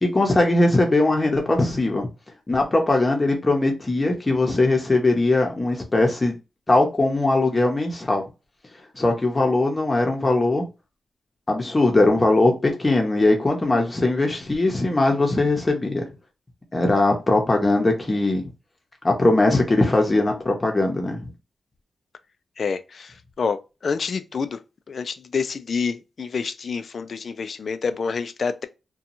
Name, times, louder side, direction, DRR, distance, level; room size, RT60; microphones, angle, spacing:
voice 1, 0.0-2.1 2.5-6.4 6.7-8.2 9.0-10.6 11.5-16.0 16.7-18.5 19.0-21.3, left 2 dB, 30° left, 0.7 m, -20 dB
voice 2, 22.6-24.6 24.9-28.7, left 5 dB, 65° left, 0.3 m, -28 dB
2.8 x 2.2 x 2.6 m
cardioid pair, 70°, 0 cm